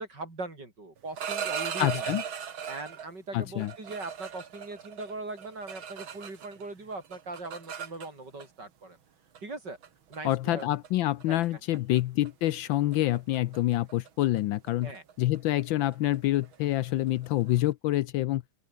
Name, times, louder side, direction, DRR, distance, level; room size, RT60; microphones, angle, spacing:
voice 1, 0.0-2.1 2.7-9.0 9.4-9.8 10.1-10.7 11.3-11.4 11.7-11.8 14.8-15.0, right 2 dB, 50° right, 6.2 m, -40 dB
sound 1, 1.0-3.1 3.6-6.7 6.9-8.5 9.4-9.5 9.8-10.2 10.6-10.9 11.2-11.5 11.7-12.0 12.3-17.6, right 8 dB, 70° right, 2.6 m, -38 dB
voice 2, 1.8-2.2 3.3-3.7 10.2-14.9 15.2-18.4, left 15 dB, 75° left, 1.3 m, -27 dB
open air
omnidirectional pair, 2.3 m